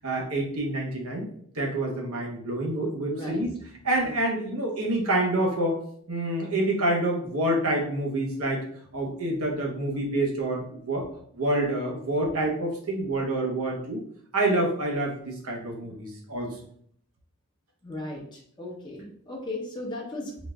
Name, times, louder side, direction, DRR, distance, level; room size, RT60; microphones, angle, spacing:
voice 1, 0.0-1.3 1.5-3.5 3.8-5.8 6.1-8.6 8.9-11.1 11.3-14.0 14.3-16.5, right 1 dB, 80° right, -1 dB, 1.1 m, -27 dB
voice 2, 3.1-3.4 4.0-4.1 17.8-20.4, left 2 dB, 20° left, -3 dB, 0.7 m, -36 dB
4.0 x 2.5 x 3.4 m, 0.62 s
head